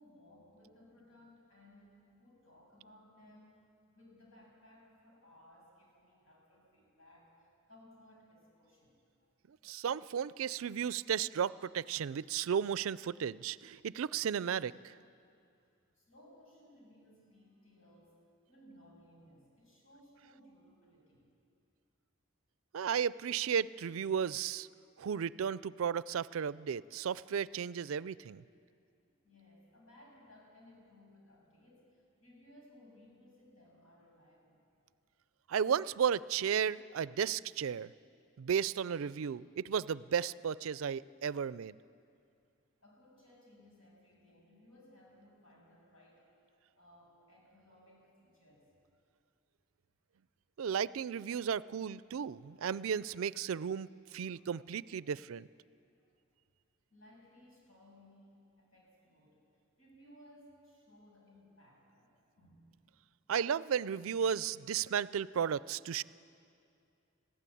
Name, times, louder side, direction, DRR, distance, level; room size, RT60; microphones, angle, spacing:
voice 1, 0.0-9.0 10.9-11.1 15.9-21.3 24.9-25.0 29.1-34.6 42.8-46.3 46.7-48.7 54.1-54.5 56.0-56.1 56.9-59.5 59.8-62.7, left 1 dB, 75° left, -2 dB, 7.0 m, -61 dB
voice 2, 9.5-14.9 22.7-24.7 25.0-28.4 35.5-37.9 38.4-41.8 50.6-55.5 63.3-66.0, right 7 dB, 80° right, 19 dB, 0.4 m, -34 dB
21.0 x 15.5 x 8.5 m, 2.5 s
head